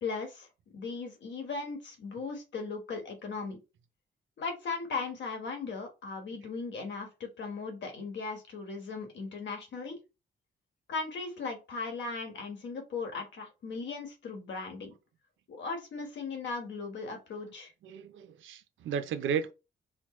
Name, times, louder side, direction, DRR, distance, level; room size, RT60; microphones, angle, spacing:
voice 1, 0.0-3.6 4.4-10.0 10.9-14.9 15.5-17.7, left 4 dB, 70° left, 1.3 m, -38 dB
voice 2, 17.8-19.5, right 7 dB, 85° right, 0.5 m, -34 dB
4.5 x 2.1 x 3.0 m
cardioid pair, 105°, 20 cm